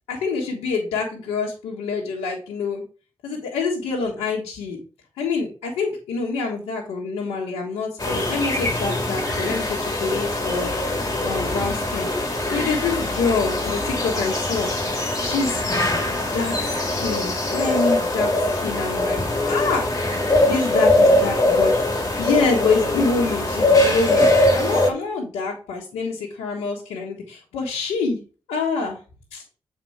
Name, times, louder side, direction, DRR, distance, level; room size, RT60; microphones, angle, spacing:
voice 1, 0.1-2.8 3.2-4.8 5.2-10.7 11.2-12.1 12.5-14.7 15.2-15.6 16.1-19.2 19.5-19.9 20.4-21.7 22.2-24.2 24.5-28.2 28.5-29.0 29.3-29.4, left 4 dB, 90° left, -2 dB, 1.5 m, -26 dB
sound 1, 8.0-24.9, left 1 dB, 35° left, 3.5 m, -22 dB
7.8 x 4.3 x 5.7 m, 0.35 s
supercardioid pair, 40°, 10 cm